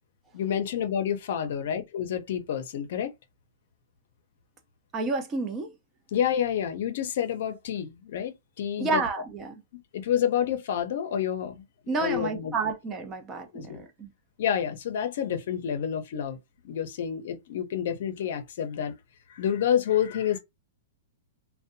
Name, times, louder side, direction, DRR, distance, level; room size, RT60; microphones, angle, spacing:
voice 1, 0.3-3.1 6.1-9.0 9.7-11.6 12.0-12.5 13.5-13.8 14.4-16.4 16.6-18.9 19.3-20.4, left 9 dB, 65° left, 0.5 m, -29 dB
voice 2, 4.9-5.7 8.8-9.6 11.9-14.1, right 3 dB, 25° right, 0.5 m, -30 dB
2.6 x 2.1 x 2.5 m
hypercardioid pair, 140°, 0 cm